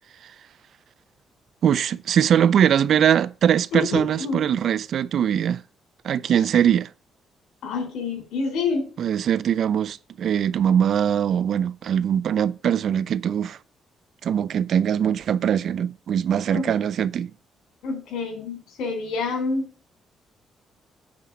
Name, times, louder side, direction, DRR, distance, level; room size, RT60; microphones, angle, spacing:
voice 1, 1.6-5.6 6.0-6.9 9.0-13.6 14.2-17.3, right 9 dB, 65° right, 0.5 m, -21 dB
voice 2, 3.7-4.4 7.6-8.9 16.5-16.7 17.8-19.7, left 4 dB, 80° left, 3.5 m, -27 dB
8.8 x 4.1 x 7.2 m
cardioid pair, 95°, 0 cm